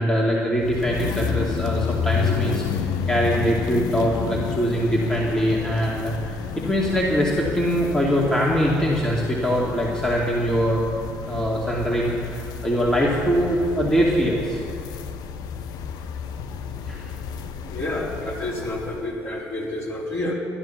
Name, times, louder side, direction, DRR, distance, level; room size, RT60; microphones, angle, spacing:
voice 1, 0.0-10.8 11.3-14.6 16.9-17.1, equal, 10° left, -4 dB, 2.4 m, -23 dB
sound 1, 0.6-19.1, left 7 dB, 70° left, 0.7 m, -31 dB
voice 2, 17.6-20.3, left 1 dB, 40° left, -4 dB, 3.9 m, -29 dB
13.0 x 11.0 x 5.9 m, 2.4 s
hypercardioid pair, 60°, 7 cm